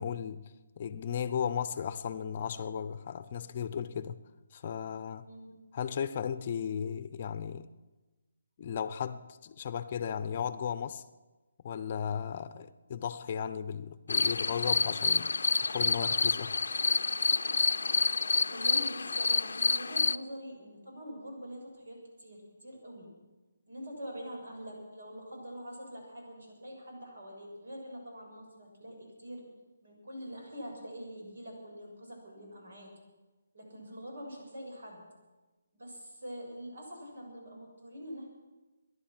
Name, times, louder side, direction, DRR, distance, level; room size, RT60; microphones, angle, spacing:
voice 1, 0.0-4.2 4.5-5.2 5.7-7.7 8.6-11.0 11.6-15.3 15.7-16.5, left 8 dB, 40° left, 0.7 m, -35 dB
voice 2, 5.2-5.5 18.5-23.1 23.7-29.4 29.8-32.9 33.5-35.0 35.7-38.3, equal, 70° right, 7.0 m, -44 dB
sound 1, 14.1-20.2, left 4 dB, 75° left, 0.5 m, -28 dB
21.5 x 11.0 x 6.0 m
hypercardioid pair, 160°, 0 cm